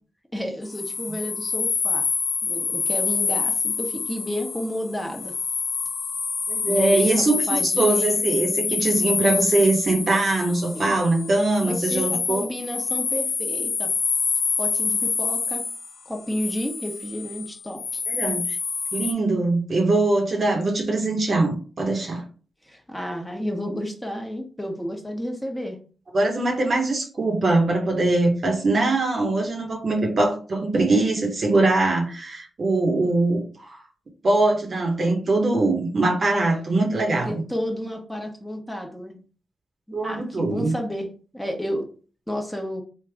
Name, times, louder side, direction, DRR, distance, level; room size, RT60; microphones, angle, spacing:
voice 1, 0.3-2.1 2.4-5.3 6.7-8.2 10.7-11.0 11.6-13.9 14.6-15.6 16.0-18.0 22.7-25.8 37.2-39.2 39.9-41.1 41.3-41.9 42.3-42.8, equal, 5° left, 2 dB, 1.2 m, -31 dB
sound 1, 0.6-19.1, left 4 dB, 65° left, 0.4 m, -27 dB
voice 2, 6.5-12.5 18.1-18.4 18.9-22.2 26.1-33.8 34.2-37.4 39.9-40.7, right 2 dB, 55° right, 1 dB, 1.0 m, -22 dB
3.4 x 2.4 x 3.4 m, 0.39 s
supercardioid pair, 45°, 0 cm